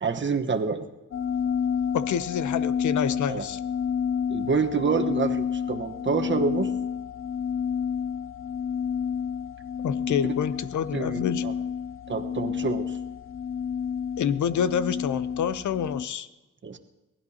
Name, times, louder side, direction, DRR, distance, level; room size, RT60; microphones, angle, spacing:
voice 1, 0.0-0.8 3.3-3.4 4.3-6.7 10.9-11.5 12.1-12.9 16.6-16.8, right 5 dB, 40° right, 5 dB, 1.2 m, -27 dB
sound 1, 1.1-16.1, left 7 dB, 45° left, 0.5 m, -30 dB
voice 2, 1.9-3.6 9.8-11.4 14.2-16.3, left 8 dB, 70° left, 14 dB, 0.8 m, -27 dB
22.5 x 16.0 x 2.9 m, 1.1 s
cardioid pair, 60°, 31 cm